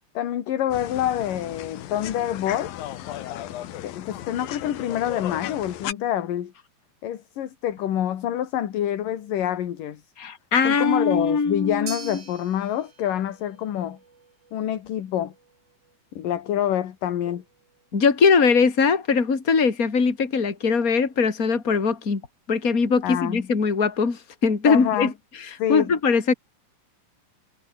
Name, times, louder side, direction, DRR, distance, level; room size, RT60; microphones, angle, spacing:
voice 1, 0.2-2.7 3.8-6.5 7.0-10.0 10.7-14.0 14.5-15.3 16.2-17.4 23.0-23.5 24.7-25.1 25.6-25.9, left 11 dB, 70° left, 3.5 m, -26 dB
sound 1, 0.7-5.9, left 12 dB, 85° left, 3.2 m, -35 dB
voice 2, 10.2-12.1 17.9-22.2 22.5-25.1 25.4-26.3, left 5 dB, 25° left, 3.4 m, -21 dB
sound 2, 11.9-20.2, right 5 dB, 55° right, 6.3 m, -47 dB
omnidirectional pair, 4.1 m